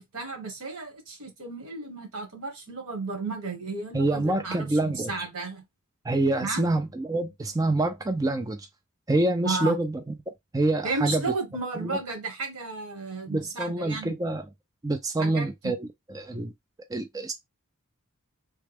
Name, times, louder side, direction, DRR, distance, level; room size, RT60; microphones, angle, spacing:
voice 1, 0.0-5.6 6.4-6.6 9.4-9.7 10.8-14.1 15.2-15.7, right 3 dB, 90° right, 1.4 m, -33 dB
voice 2, 3.9-5.1 6.0-8.7 9.1-10.0 10.5-11.2 11.8-12.0 13.3-14.4 14.8-16.5 16.9-17.3, right 2 dB, 15° right, 0.4 m, -26 dB
3.3 x 2.2 x 3.4 m
head